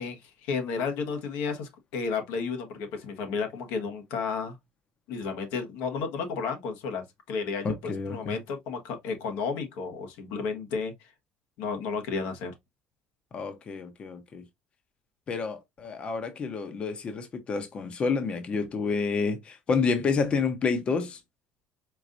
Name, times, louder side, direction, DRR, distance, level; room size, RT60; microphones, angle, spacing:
voice 1, 0.0-4.5 5.1-10.9 11.6-12.5, left 5 dB, 85° left, 1.4 m, -32 dB
voice 2, 7.6-8.4 13.3-14.4 15.3-21.2, left 4 dB, 30° left, 0.8 m, -29 dB
4.7 x 3.9 x 2.6 m
cardioid pair, 135°, 3 cm